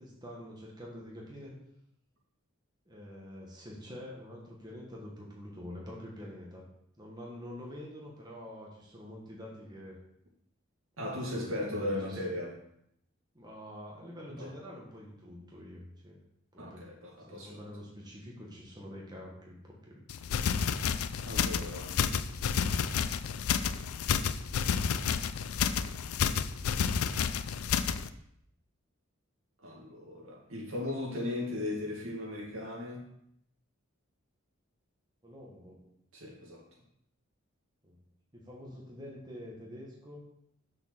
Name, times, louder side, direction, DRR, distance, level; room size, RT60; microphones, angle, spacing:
voice 1, 0.0-1.5 2.9-6.6 7.0-10.0 11.0-12.3 13.3-16.2 16.5-17.0 17.3-20.0 23.2-23.5 35.2-35.9 37.8-38.0 38.3-40.2, left 1 dB, 20° right, -3 dB, 1.5 m, -46 dB
voice 2, 11.0-12.6 14.4-14.5 16.6-17.7 21.2-22.0 29.6-33.1 36.1-36.6, left 1 dB, 75° right, -2 dB, 2.2 m, -37 dB
sound 1, 20.1-28.1, left 7 dB, 90° left, 0.4 m, -30 dB
6.3 x 4.9 x 6.1 m, 0.75 s
head